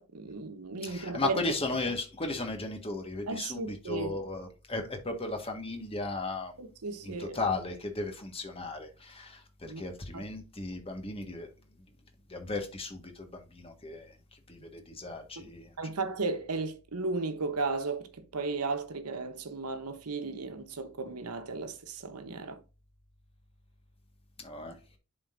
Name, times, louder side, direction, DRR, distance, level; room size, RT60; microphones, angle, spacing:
voice 1, 0.0-1.4 3.3-4.1 6.6-7.4 9.6-9.8 10.1-10.2 15.4-15.5 15.8-22.6, right 3 dB, 90° right, 1.0 m, -35 dB
voice 2, 0.8-6.5 7.0-11.5 12.3-15.7 24.4-24.8, left 3 dB, 25° left, 1.5 m, -36 dB
11.0 x 3.9 x 2.6 m
head